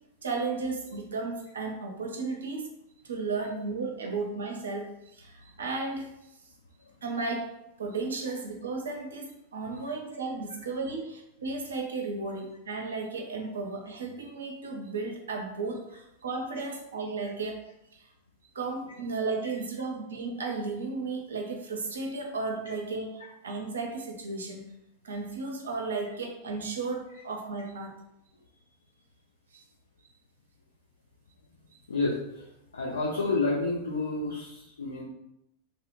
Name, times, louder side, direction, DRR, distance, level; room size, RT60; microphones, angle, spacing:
voice 1, 0.2-2.7 3.0-6.1 7.0-7.5 7.8-17.6 17.9-18.1 18.5-24.6 25.0-27.9 29.5-29.6, right 3 dB, 70° right, 2 dB, 0.5 m, -34 dB
voice 2, 31.9-32.5 32.7-35.0, left 3 dB, 70° left, -2 dB, 0.3 m, -30 dB
2.6 x 2.1 x 2.5 m, 0.84 s
figure-of-eight pair, 90°, 0 cm